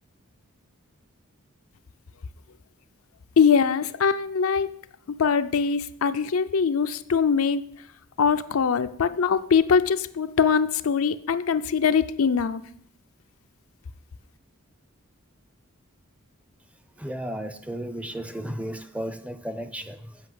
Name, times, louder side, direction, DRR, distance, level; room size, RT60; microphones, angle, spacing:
voice 1, 3.4-4.7 5.1-7.6 8.2-12.6, left 6 dB, 75° left, 10 dB, 0.5 m, -22 dB
voice 2, 17.0-20.2, right 1 dB, 5° right, 10 dB, 0.5 m, -34 dB
8.3 x 5.4 x 7.7 m, 0.68 s
head